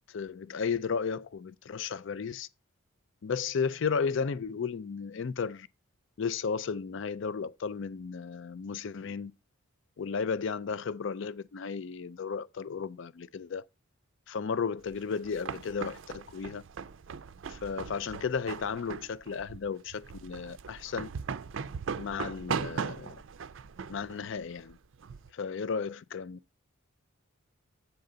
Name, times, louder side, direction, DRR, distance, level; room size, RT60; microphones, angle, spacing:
voice 1, 0.1-2.5 3.2-5.7 6.2-9.3 10.0-13.7 14.3-16.6 17.5-21.1 22.0-23.2 23.9-24.8 25.3-26.4, left 5 dB, 55° left, 0.4 m, -34 dB
sound 1, 14.9-25.3, right 6 dB, 60° right, 0.4 m, -39 dB
8.1 x 3.8 x 6.6 m
head